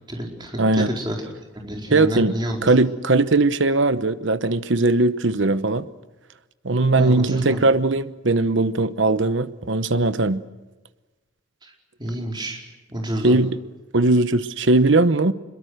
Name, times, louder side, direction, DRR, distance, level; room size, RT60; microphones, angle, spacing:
voice 1, 0.1-1.2 1.6-2.6 6.9-7.7 11.6-11.7 12.0-12.6 12.9-13.4, right 1 dB, 20° right, 4.6 m, -29 dB
voice 2, 0.6-0.9 1.9-2.3 2.6-5.9 6.6-10.4 13.2-13.6 13.9-15.3, right 2 dB, 70° right, 1.0 m, -19 dB
26.5 x 22.5 x 6.6 m
head